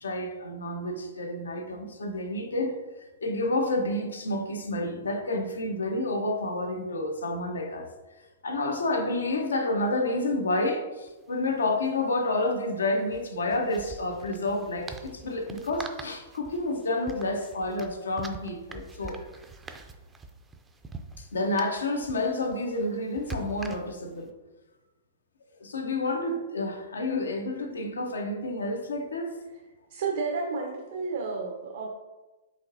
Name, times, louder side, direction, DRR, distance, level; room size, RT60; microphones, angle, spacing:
voice 1, 0.0-2.8 3.2-7.9 8.4-19.3 21.2-24.3 25.6-29.4, left 2 dB, 90° left, 4 dB, 0.6 m, -29 dB
sound 1, 11.1-11.2 11.4-11.5 13.0-24.2, right 3 dB, 15° right, 0.3 m, -44 dB
voice 2, 29.9-31.9, right 4 dB, 65° right, 1 dB, 0.5 m, -31 dB
5.1 x 3.0 x 2.7 m, 1.1 s
hypercardioid pair, 125°, 0 cm